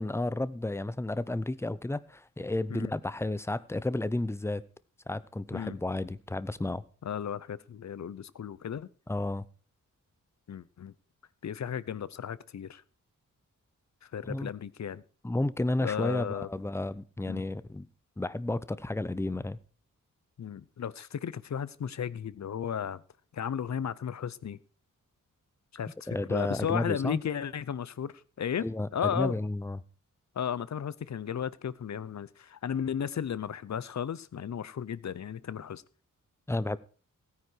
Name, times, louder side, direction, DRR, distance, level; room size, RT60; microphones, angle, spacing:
voice 1, 0.0-4.6 5.1-6.8 9.1-9.4 14.2-14.5 15.2-17.9 18.2-19.6 26.1-27.2 28.6-29.8 36.5-36.8, left 2 dB, 10° left, 0.7 m, -32 dB
voice 2, 7.0-8.9 10.5-10.9 11.4-12.8 14.0-15.0 15.8-16.5 17.3-17.4 20.4-23.0 23.3-24.6 25.7-28.7 28.9-29.4 30.4-35.8, left 8 dB, 55° left, 0.8 m, -34 dB
16.5 x 9.8 x 4.6 m
wide cardioid pair, 105°, 32 cm